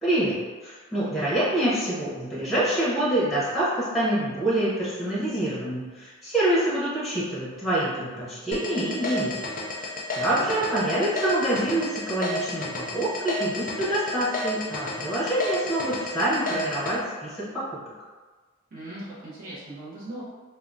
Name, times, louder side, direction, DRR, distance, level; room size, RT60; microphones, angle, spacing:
voice 1, 0.0-9.3 9.8-17.6, right 1 dB, ahead, -9 dB, 0.8 m, -26 dB
sound 1, 8.5-16.9, left 2 dB, 45° left, 0.4 m, -31 dB
voice 2, 10.2-10.6 18.7-20.2, right 1 dB, 45° right, -9 dB, 0.7 m, -39 dB
3.5 x 2.0 x 2.5 m, 1.4 s
head